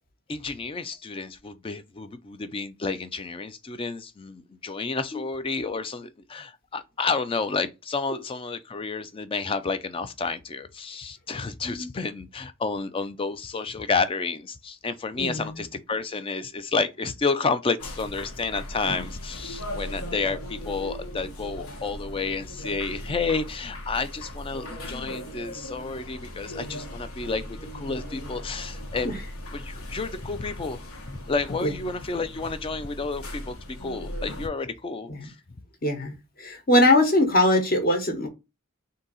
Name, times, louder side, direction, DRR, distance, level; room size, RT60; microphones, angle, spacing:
voice 1, 0.3-29.1 29.5-30.8 31.1-35.3, left 4 dB, 25° left, 0.4 m, -30 dB
voice 2, 15.2-15.6 20.0-20.2 29.0-29.2 31.6-31.7 35.1-35.3 35.8-38.3, left 1 dB, 45° left, 1.2 m, -22 dB
sound 1, 17.8-34.5, left 1 dB, 75° left, 1.2 m, -38 dB
3.9 x 2.7 x 4.0 m
head